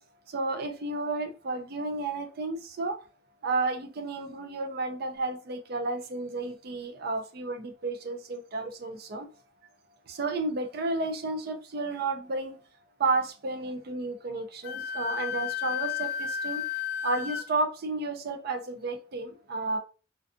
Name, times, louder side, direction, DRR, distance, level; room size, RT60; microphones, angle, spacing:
voice 1, 0.3-3.0 3.4-9.3 10.1-12.6 13.0-16.6 17.0-19.8, right 3 dB, 55° right, 0.4 m, -32 dB
Wind instrument woodwind instrument, 14.6-17.4, left 8 dB, 60° left, 0.4 m, -32 dB
2.5 x 2.3 x 2.5 m
head